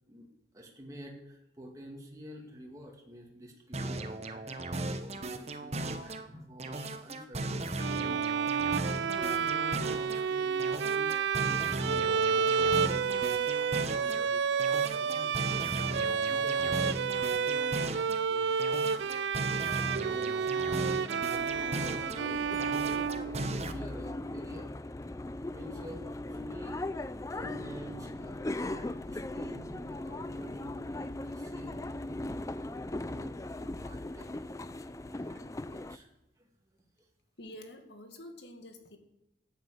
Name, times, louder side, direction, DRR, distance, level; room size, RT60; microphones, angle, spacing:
voice 1, 0.5-7.6 8.0-8.6 9.0-11.1 11.4-13.4 13.9-18.5 18.9-22.6 23.6-24.7 25.1-25.2 25.5-26.0 26.3-31.7 32.2-34.5 34.8-36.1 36.4-36.5, equal, 20° right, -1 dB, 2.2 m, -48 dB
sound 1, 3.7-6.3 6.6-10.3 10.6-14.3 14.6-18.3 18.6-22.3 22.6-23.7, right 2 dB, 35° right, 0.9 m, -37 dB
Bowed string instrument, 7.8-23.8, right 6 dB, 70° right, 0.4 m, -30 dB
sound 2, 21.3-36.0, left 2 dB, 15° left, 0.4 m, -39 dB
voice 2, 37.4-39.0, left 1 dB, 65° left, 5 dB, 2.1 m, -48 dB
12.0 x 9.4 x 7.8 m, 0.89 s
head